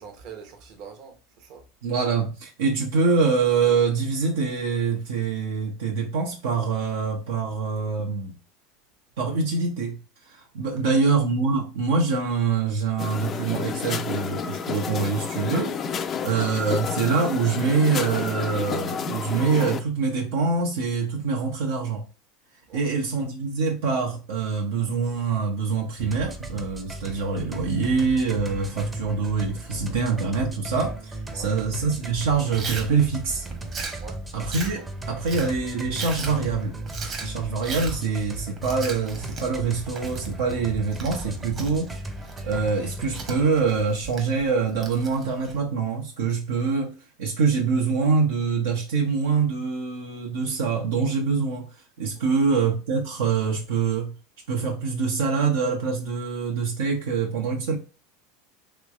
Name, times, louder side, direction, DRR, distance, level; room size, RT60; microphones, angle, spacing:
voice 1, 0.0-1.6 10.8-11.0 16.0-16.4 22.7-22.8 31.3-31.6 33.9-34.2 34.7-34.8 35.1-35.2 52.1-52.5, right 6 dB, 60° right, 0.9 m, -44 dB
voice 2, 1.8-8.3 9.2-10.0 10.3-16.0 16.2-22.1 22.7-33.4 34.3-36.7 37.2-41.9 42.4-54.2 54.5-57.8, right 5 dB, 80° right, 0.7 m, -25 dB
sound 1, 13.0-19.8, left 6 dB, 35° left, 0.3 m, -30 dB
sound 2, 26.0-43.8, right 2 dB, 15° right, 0.6 m, -36 dB
Chewing mastication, 32.6-45.6, right 4 dB, 40° right, 1.0 m, -38 dB
3.2 x 3.1 x 2.4 m
hypercardioid pair, 100°, 0 cm